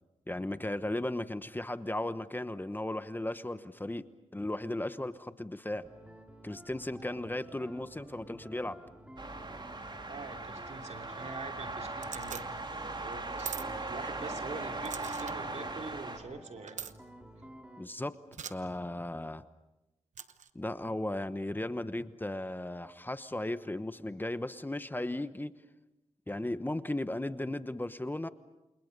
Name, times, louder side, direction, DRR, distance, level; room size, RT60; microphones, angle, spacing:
voice 1, 0.3-4.1 4.3-5.9 6.4-8.8 17.8-18.2 18.5-19.4 20.5-25.5 26.3-28.3, left 1 dB, 15° left, 12 dB, 1.1 m, -36 dB
sound 1, 5.8-17.8, equal, 10° right, 3.8 m, -52 dB
sound 2, 9.2-16.2, right 2 dB, 40° right, 3.6 m, -39 dB
voice 2, 10.1-12.7 13.0-16.8, right 4 dB, 70° right, 4 dB, 2.9 m, -44 dB
sound 3, 12.0-12.4 13.4-13.7 14.9-15.4 16.7-16.9 18.3-18.5 20.1-20.5, right 7 dB, 85° right, 1.0 m, -41 dB
28.5 x 28.5 x 5.4 m, 0.99 s
cardioid pair, 65°, 12 cm